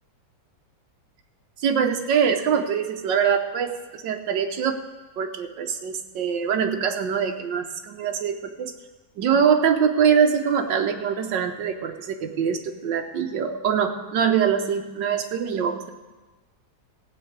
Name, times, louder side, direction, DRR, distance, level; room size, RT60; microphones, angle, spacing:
voice 1, 1.6-4.8 5.2-8.7 9.2-15.9, right 7 dB, 90° right, 5 dB, 1.6 m, -23 dB
16.5 x 5.6 x 8.1 m, 1.2 s
omnidirectional pair, 1.9 m